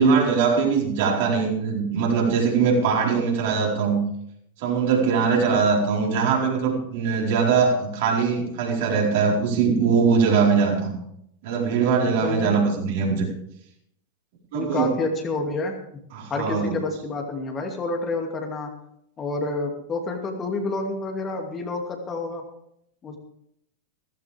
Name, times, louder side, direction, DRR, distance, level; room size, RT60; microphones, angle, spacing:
voice 1, 0.0-4.0 4.6-10.9 11.4-13.3 14.5-14.9 16.1-16.8, right 5 dB, 50° right, -1 dB, 4.5 m, -21 dB
voice 2, 12.2-12.6 14.5-15.7 16.3-18.7 19.2-22.4 23.0-23.2, left 3 dB, 25° left, 3 dB, 2.5 m, -28 dB
16.5 x 15.0 x 3.6 m, 0.73 s
figure-of-eight pair, 90°, 0 cm